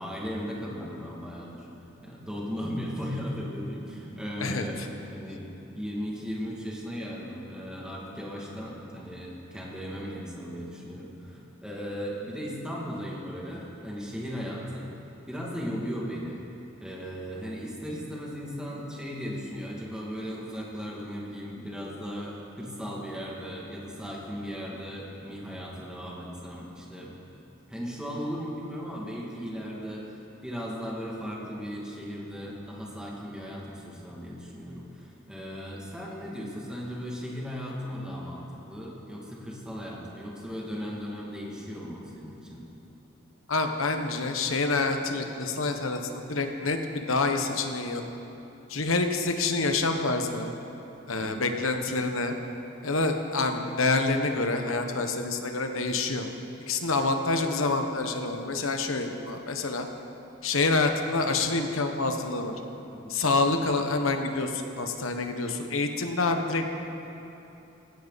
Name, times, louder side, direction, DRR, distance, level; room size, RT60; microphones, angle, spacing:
voice 1, 0.0-1.7 2.0-4.8 5.1-5.5 5.8-14.9 15.3-16.5 16.8-27.2 27.7-42.7 51.1-51.4 62.9-63.2, equal, 5° right, -4 dB, 2.5 m, -37 dB
voice 2, 43.5-48.0 48.7-50.5 51.1-52.3 52.8-56.3 56.7-59.9 60.4-62.5 63.1-66.6, left 3 dB, 75° left, 5 dB, 1.3 m, -27 dB
19.5 x 16.5 x 4.2 m, 3.0 s
head